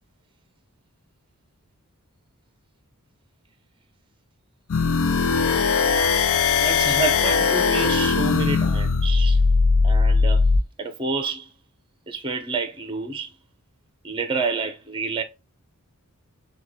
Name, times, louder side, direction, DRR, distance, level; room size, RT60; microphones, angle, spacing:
sound 1, 4.7-10.6, left 4 dB, 65° left, 0.6 m, -19 dB
voice 1, 6.6-9.4 9.8-10.5 10.8-11.5 12.1-13.3 14.0-15.2, right 4 dB, 25° right, 0.9 m, -28 dB
6.4 x 2.4 x 3.2 m
head